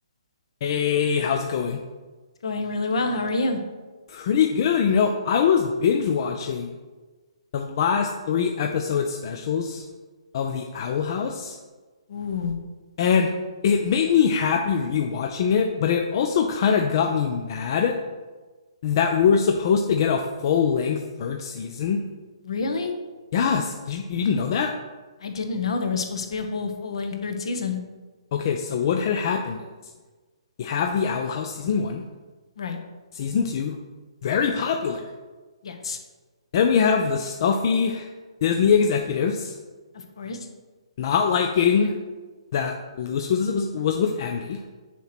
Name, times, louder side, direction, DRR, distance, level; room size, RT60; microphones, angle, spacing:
voice 1, 0.6-1.8 4.1-6.8 7.5-9.9 10.3-11.6 13.0-13.3 13.6-18.0 18.8-22.0 23.3-24.7 28.3-29.6 30.6-32.0 33.1-33.8 34.2-35.1 36.5-38.1 38.4-39.6 41.0-41.9 42.5-44.6, left 6 dB, 45° left, 3 dB, 0.4 m, -23 dB
voice 2, 2.4-3.6 12.1-12.6 22.4-22.9 25.2-27.8 32.6-32.8 35.6-36.0 39.9-40.5, left 3 dB, 65° left, 5 dB, 1.0 m, -28 dB
6.9 x 3.0 x 5.9 m, 1.3 s
hypercardioid pair, 145°, 3 cm